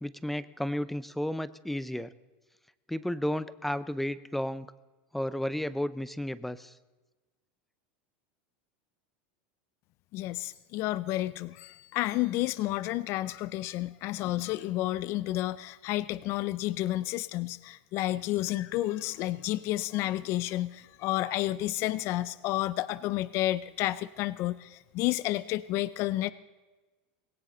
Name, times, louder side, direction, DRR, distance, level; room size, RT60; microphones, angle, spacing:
voice 1, 0.0-2.1 2.9-4.7 5.1-6.7, left 1 dB, 5° left, 16 dB, 0.5 m, -33 dB
voice 2, 10.1-26.3, left 16 dB, 50° left, 17 dB, 0.5 m, -31 dB
20.0 x 17.5 x 3.9 m, 1.2 s
supercardioid pair, 130°, 6 cm